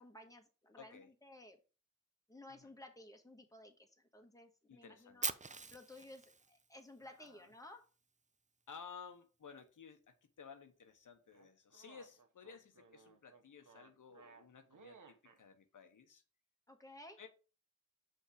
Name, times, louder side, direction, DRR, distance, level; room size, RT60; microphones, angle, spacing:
voice 1, 0.0-1.6 2.3-5.3 5.7-7.9 16.7-17.2, left 1 dB, 10° left, 1.4 m, -56 dB
voice 2, 0.8-1.1 2.5-2.7 4.7-5.3 7.2-7.4 8.7-16.2 17.2-17.3, left 6 dB, 85° left, 0.9 m, -56 dB
Fire, 5.2-7.3, right 4 dB, 25° right, 0.5 m, -42 dB
sound 1, 11.3-15.4, right 5 dB, 80° right, 0.9 m, -61 dB
5.6 x 3.6 x 4.9 m
wide cardioid pair, 60°, 31 cm